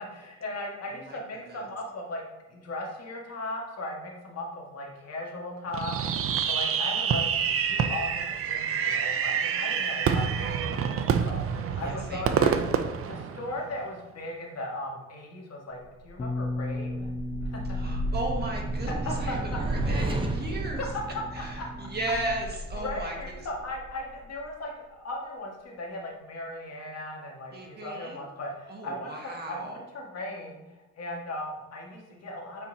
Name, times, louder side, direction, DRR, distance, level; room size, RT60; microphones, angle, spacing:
voice 1, 0.0-2.2 2.5-12.5 13.0-17.1 17.4-17.8 18.1-18.2 18.9-19.4 21.1-21.4 22.8-30.6 31.0-32.7, left 1 dB, 55° left, -1 dB, 1.7 m, -37 dB
voice 2, 1.1-1.7 11.7-12.6 17.7-20.8 21.3-23.1 27.5-28.2 28.7-29.8, right 2 dB, 35° right, -1 dB, 1.6 m, -36 dB
Fireworks, 5.7-13.9, right 7 dB, 50° right, 0.5 m, -27 dB
sound 1, 16.0-24.5, right 1 dB, 15° right, 0.8 m, -33 dB
Bass guitar, 16.2-22.4, left 2 dB, 20° left, 0.6 m, -37 dB
8.7 x 4.4 x 2.8 m, 1.0 s
cardioid pair, 90°, 30 cm